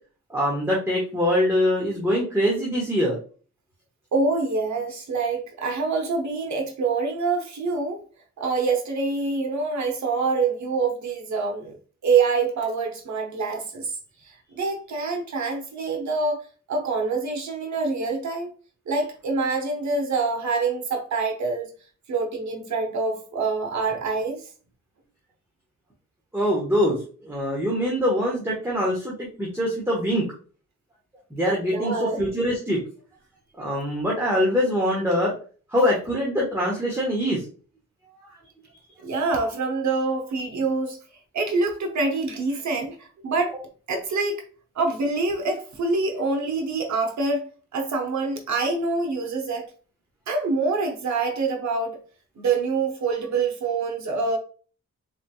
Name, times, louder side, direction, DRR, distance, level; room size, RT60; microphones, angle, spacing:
voice 1, 0.3-3.1 26.3-27.0 27.2-30.2 31.3-32.8 33.6-35.3 35.7-37.4, equal, 10° right, 1.2 m, -23 dB
voice 2, 4.1-8.0 8.4-11.8 12.0-13.9 14.6-18.5 18.9-21.7 22.1-24.4 31.7-32.2 39.0-41.0 41.3-43.6 43.9-44.4 44.8-49.7 50.3-52.0 52.4-54.4, right 4 dB, 65° right, 0.9 m, -25 dB
4.0 x 3.2 x 2.3 m
cardioid pair, 100°, 30 cm